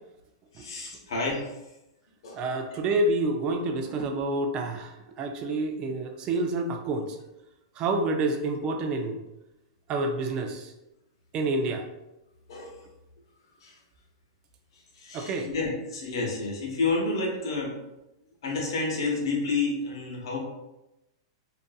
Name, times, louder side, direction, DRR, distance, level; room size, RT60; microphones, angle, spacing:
voice 1, 0.5-1.5 2.2-2.5 12.5-12.8 13.6-13.7 14.9-17.7 18.4-20.4, left 3 dB, 75° left, -2 dB, 0.9 m, -30 dB
voice 2, 2.3-7.2 7.8-9.2 9.9-10.7 11.3-11.9 15.1-15.5, right 2 dB, 35° right, 5 dB, 0.4 m, -28 dB
2.5 x 2.5 x 2.3 m, 0.94 s
hypercardioid pair, 130°, 3 cm